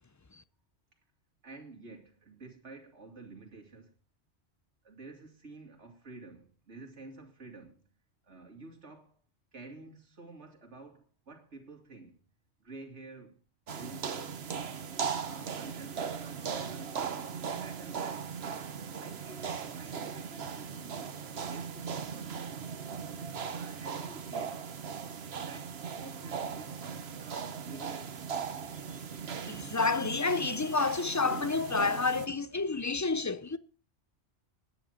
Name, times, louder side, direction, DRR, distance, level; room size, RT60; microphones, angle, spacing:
voice 1, 1.4-3.9 4.8-7.9 8.2-9.2 9.5-12.2 12.6-13.4 13.7-14.4 15.1-17.0 17.4-18.3 19.0-22.5 23.5-24.7 25.4-26.8 27.1-28.3, right 3 dB, 85° right, 2.8 m, -50 dB
sound 1, 13.7-32.3, right 6 dB, 65° right, 1.2 m, -38 dB
voice 2, 29.4-33.6, left 4 dB, 25° left, 0.4 m, -29 dB
10.5 x 9.6 x 6.4 m
omnidirectional pair, 1.1 m